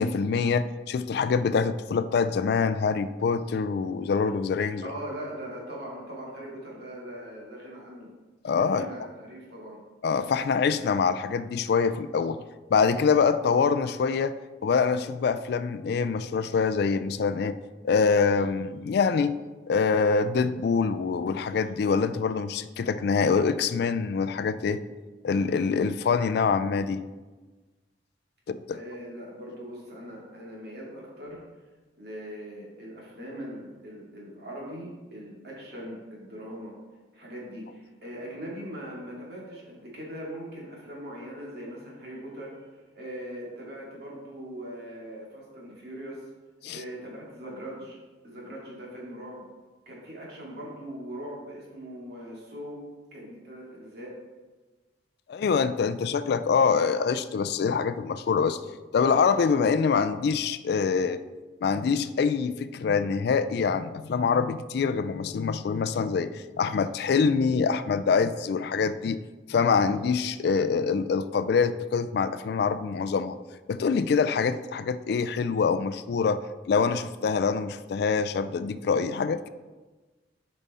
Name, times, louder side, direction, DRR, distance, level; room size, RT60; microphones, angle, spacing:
voice 1, 0.0-4.9 8.4-8.9 10.0-12.4 12.7-14.3 14.6-17.6 17.8-19.4 19.7-24.8 25.2-27.0 28.5-28.8 46.6-46.8 55.3-58.6 58.9-61.2 61.6-69.2 69.5-73.4 73.7-79.5, left 5 dB, 65° left, 13 dB, 0.3 m, -25 dB
voice 2, 4.8-8.1 8.7-9.8 28.7-31.4 32.0-36.7 37.1-46.3 46.7-48.0 48.2-49.5 49.9-52.8 53.1-54.1, equal, 60° right, -4 dB, 2.2 m, -40 dB
7.0 x 5.4 x 4.2 m, 1.3 s
head